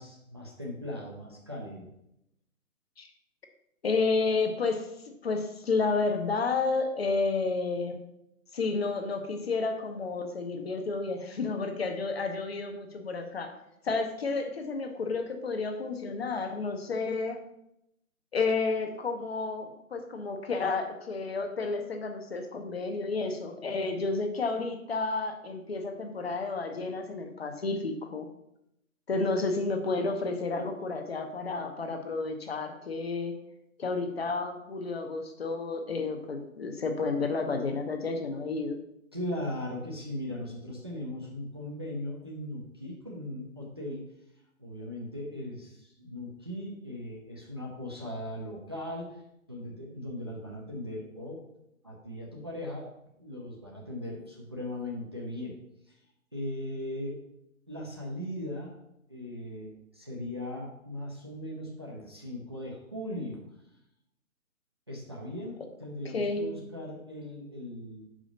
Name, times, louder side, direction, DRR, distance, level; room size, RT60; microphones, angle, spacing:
voice 1, 0.0-1.9 39.1-44.1 44.6-49.2 49.5-51.4 51.8-52.9 53.2-55.5 55.9-56.0 56.3-57.2 57.7-58.8 59.1-63.4 64.9-68.1, left 1 dB, 20° right, -3 dB, 0.5 m, -38 dB
voice 2, 3.8-8.0 8.5-13.5 13.8-17.4 18.3-28.3 29.1-33.3 33.8-38.8 66.0-66.6, left 3 dB, 45° left, 5 dB, 0.9 m, -31 dB
5.5 x 5.0 x 5.1 m, 0.81 s
figure-of-eight pair, 140°, 42 cm